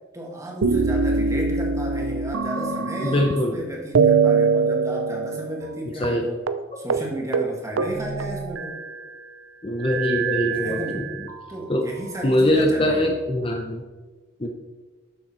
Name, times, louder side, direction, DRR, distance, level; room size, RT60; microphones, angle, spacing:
voice 1, 0.1-6.4 6.8-8.8 10.5-11.1 11.5-13.2, right 1 dB, 15° right, -1 dB, 2.0 m, -33 dB
sound 1, 0.6-3.6 4.0-5.8 6.0-6.2 6.5-6.6 6.9-7.1 7.3-9.1 9.8-11.4 12.1-13.0, right 5 dB, 85° right, 0.6 m, -24 dB
voice 2, 3.0-3.6 6.0-6.3 9.6-11.1 11.7-11.8 12.2-13.8 14.4-14.5, left 1 dB, 25° left, 2 dB, 0.8 m, -22 dB
12.5 x 6.5 x 4.4 m, 1.3 s
head